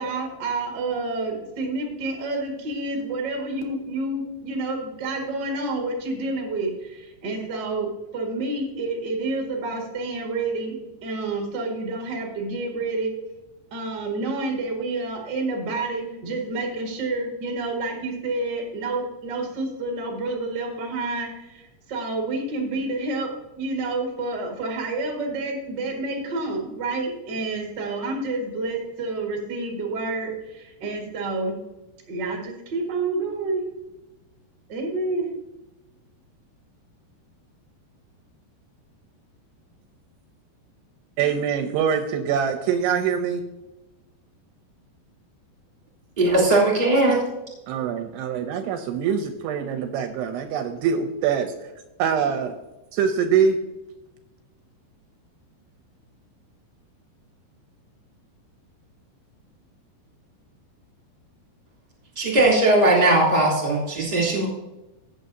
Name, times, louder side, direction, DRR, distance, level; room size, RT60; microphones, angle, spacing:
voice 1, 0.0-13.1 13.7-23.3 23.6-31.6 32.1-33.6 34.7-35.3, right 2 dB, 50° right, 0 dB, 1.2 m, -29 dB
voice 2, 41.2-43.4 47.7-51.5 52.0-52.6 52.9-53.6, right 7 dB, 80° right, 6 dB, 2.6 m, -24 dB
voice 3, 46.2-47.2 62.2-64.5, right 2 dB, 15° right, -4 dB, 2.5 m, -19 dB
15.5 x 8.4 x 2.7 m, 1.0 s
omnidirectional pair, 5.1 m